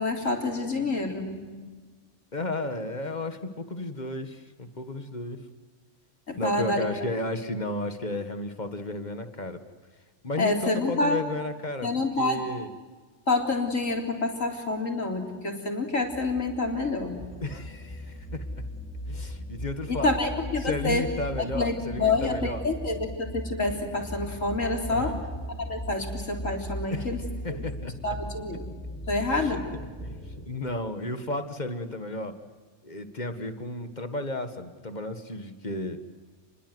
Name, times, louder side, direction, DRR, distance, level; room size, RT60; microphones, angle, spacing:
voice 1, 0.0-1.5 6.3-6.9 10.4-11.2 11.8-12.4 13.3-17.1 19.9-21.0 21.4-25.2 25.6-27.2 27.5-27.6 28.0-28.7 29.1-29.6, left 2 dB, 85° left, 2 dB, 4.2 m, -27 dB
voice 2, 2.3-5.4 6.4-9.6 10.2-11.9 12.2-12.7 17.4-18.6 19.1-20.1 20.6-22.6 24.9-25.2 26.9-27.1 27.4-27.9 29.4-29.6 30.0-32.3 32.8-36.0, left 2 dB, 35° left, 9 dB, 1.8 m, -33 dB
sound 1, 16.0-30.5, equal, 10° left, 7.0 m, -38 dB
30.0 x 22.0 x 8.0 m, 1.4 s
omnidirectional pair, 1.3 m